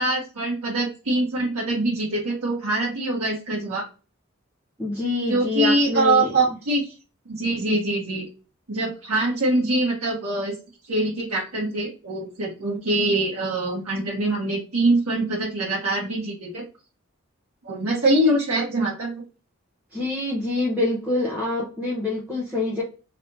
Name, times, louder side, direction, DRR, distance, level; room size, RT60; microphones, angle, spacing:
voice 1, 0.0-3.9 5.3-6.9 7.3-8.3 8.7-10.6 10.9-16.6 17.6-19.2, right 2 dB, 90° right, -4 dB, 1.1 m, -24 dB
voice 2, 4.8-6.3 19.9-22.8, left 2 dB, 5° right, -7 dB, 0.8 m, -26 dB
3.2 x 2.8 x 2.7 m, 0.34 s
head